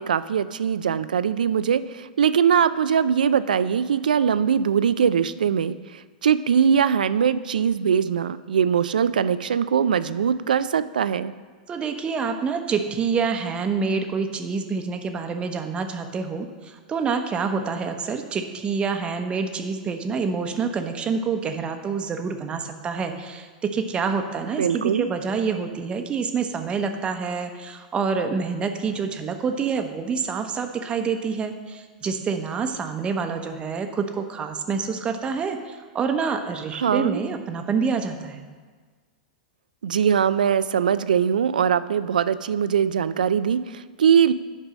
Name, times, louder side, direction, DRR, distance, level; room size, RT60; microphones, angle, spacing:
voice 1, 0.0-11.3 24.6-25.1 36.8-37.2 39.8-44.3, right 7 dB, 85° right, 15 dB, 0.3 m, -21 dB
voice 2, 11.7-38.4, right 5 dB, 25° right, 6 dB, 0.8 m, -27 dB
8.1 x 5.4 x 6.1 m, 1.5 s
hypercardioid pair, 110°, 4 cm